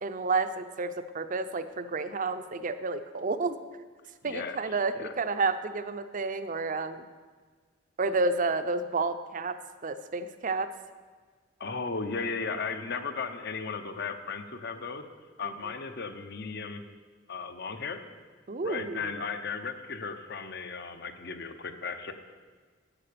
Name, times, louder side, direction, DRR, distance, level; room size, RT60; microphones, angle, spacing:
voice 1, 0.0-3.6 4.2-7.0 8.0-9.6 9.8-10.7 15.4-15.5 18.5-19.2, right 3 dB, 45° right, 11 dB, 0.6 m, -30 dB
voice 2, 4.2-5.1 11.6-15.0 15.4-16.8 17.3-18.0 18.6-22.1, left 4 dB, 55° left, 8 dB, 0.9 m, -36 dB
10.0 x 8.7 x 6.8 m, 1.5 s
head